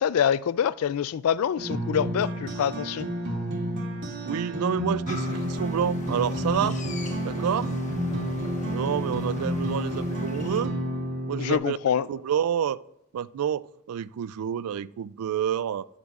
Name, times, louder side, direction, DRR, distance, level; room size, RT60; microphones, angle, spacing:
voice 1, 0.0-3.1 11.4-12.1, left 8 dB, 70° left, 0.3 m, -25 dB
sound 1, 1.6-11.5, equal, 60° right, 2.3 m, -30 dB
voice 2, 4.2-6.8 7.2-7.7 8.7-10.7 11.3-11.8 12.1-12.8 13.1-15.9, right 8 dB, 75° right, 0.3 m, -28 dB
sound 2, 5.1-10.6, left 2 dB, 35° left, 1.2 m, -42 dB
13.5 x 12.5 x 2.4 m
head